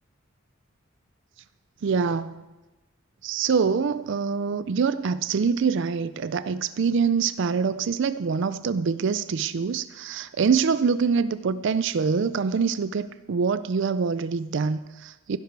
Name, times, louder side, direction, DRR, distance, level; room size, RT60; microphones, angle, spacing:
voice 1, 1.8-2.4 3.2-15.4, right 5 dB, 60° right, 15 dB, 0.4 m, -25 dB
15.5 x 12.0 x 4.6 m, 1.1 s
head